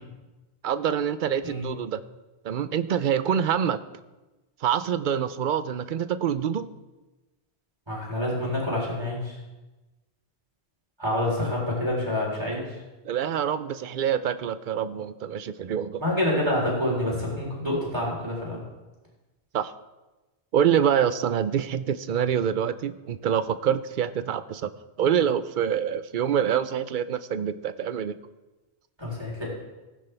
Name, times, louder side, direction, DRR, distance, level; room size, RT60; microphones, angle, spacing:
voice 1, 0.6-2.0 2.4-3.8 4.6-6.7 13.0-16.0 19.5-19.7 20.5-24.7 25.0-28.1, right 8 dB, 55° right, 13 dB, 0.7 m, -26 dB
voice 2, 7.9-9.3 11.0-12.6 16.0-18.6 29.0-29.5, left 1 dB, 25° right, -4 dB, 3.9 m, -27 dB
18.5 x 10.0 x 3.4 m, 1.1 s
omnidirectional pair, 1.1 m